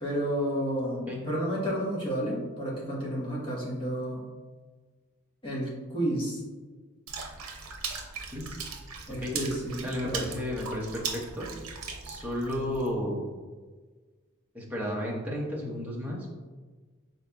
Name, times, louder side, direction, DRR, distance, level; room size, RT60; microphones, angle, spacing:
voice 1, 0.0-4.3 5.4-6.4 9.1-10.2, equal, 25° left, -6 dB, 1.2 m, -31 dB
Water / Splash splatter, 7.1-12.9, right 5 dB, 85° right, 0.7 m, -39 dB
voice 2, 9.8-11.5 12.0-13.3 14.5-16.3, left 1 dB, 10° right, -4 dB, 0.8 m, -33 dB
5.4 x 4.1 x 2.3 m, 1.4 s
head